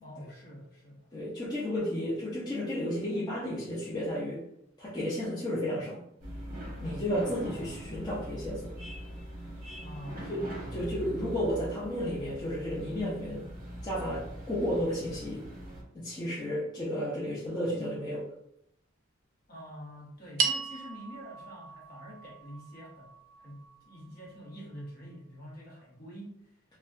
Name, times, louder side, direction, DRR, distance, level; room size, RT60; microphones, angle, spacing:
voice 1, 0.0-1.1 9.8-10.5 19.5-26.5, equal, 50° left, -5 dB, 0.9 m, -46 dB
voice 2, 1.1-4.4 4.8-6.0 6.8-8.7 10.3-10.4 10.7-13.5 13.8-15.5 15.9-18.3, equal, 20° left, -8 dB, 0.5 m, -32 dB
sound 1, 6.2-15.8, right 1 dB, 45° right, 0.8 m, -42 dB
sound 2, 20.4-24.9, right 5 dB, 80° right, 0.3 m, -37 dB
2.6 x 2.2 x 2.3 m, 0.77 s
head